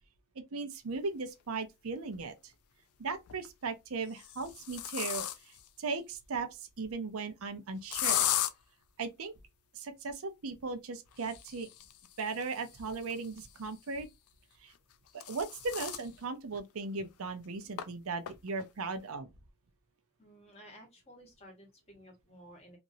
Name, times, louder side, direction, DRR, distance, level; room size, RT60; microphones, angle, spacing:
voice 1, 0.5-2.3 3.0-8.3 9.0-9.3 9.7-11.7 12.2-14.1 14.6-14.7 15.1-19.3, right 4 dB, 70° right, 0.6 m, -37 dB
sound 1, 1.5-1.6 3.1-3.5 4.1-5.7 7.9-8.5 11.1-13.7 14.7-16.1 16.6-16.7 17.0-17.1 17.8-17.9 18.3-18.6, left 12 dB, 85° left, 0.4 m, -36 dB
voice 2, 20.2-22.8, equal, 30° left, 1.3 m, -54 dB
2.9 x 2.5 x 2.6 m
head